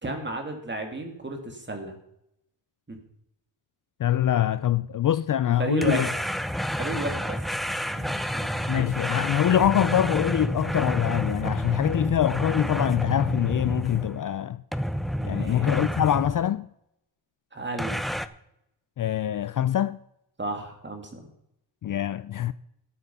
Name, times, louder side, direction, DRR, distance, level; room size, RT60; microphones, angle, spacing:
voice 1, 0.0-1.9 2.9-3.0 5.6-6.1 6.8-7.4 7.9-9.0 15.2-15.7 17.5-18.0 20.4-21.2, right 2 dB, 25° right, 2.6 m, -33 dB
voice 2, 4.0-6.1 8.7-14.6 15.2-16.7 19.0-20.0 21.8-22.5, left 11 dB, 50° left, 0.4 m, -24 dB
sound 1, 5.8-14.3 14.7-16.4 17.8-18.3, equal, ahead, 0.6 m, -29 dB
12.5 x 9.1 x 5.5 m
cardioid pair, 100°, 43 cm